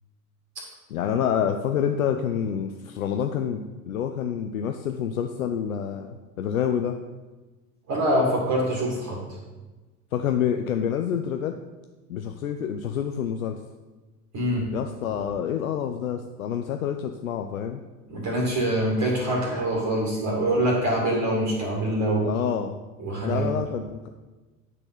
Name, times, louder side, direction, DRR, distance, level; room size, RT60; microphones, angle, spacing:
voice 1, 0.9-7.0 10.1-11.6 12.1-13.6 14.7-17.8 22.2-22.8 23.2-24.1, left 8 dB, 80° left, 5 dB, 0.5 m, -27 dB
voice 2, 7.9-9.2 14.3-14.7 18.1-22.3 23.0-23.5, right 1 dB, 40° right, -2 dB, 2.1 m, -24 dB
9.1 x 4.2 x 5.9 m, 1.2 s
figure-of-eight pair, 65°, 41 cm